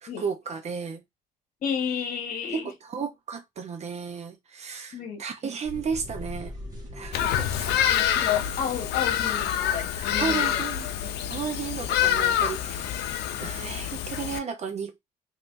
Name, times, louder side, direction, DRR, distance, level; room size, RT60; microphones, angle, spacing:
voice 1, 0.0-1.0 2.5-6.5 6.9-7.7 10.2-12.9 13.4-14.9, right 6 dB, 40° right, 0.8 m, -34 dB
voice 2, 1.6-2.7 4.9-5.2 7.9-10.6, left 7 dB, 50° left, 1.2 m, -31 dB
sound 1, 5.6-9.6, left 1 dB, 20° right, 1.5 m, -41 dB
Bird vocalization bird call bird song, 7.1-14.4, left 10 dB, 80° left, 0.6 m, -26 dB
3.3 x 2.8 x 2.6 m
cardioid pair, 110°, 17 cm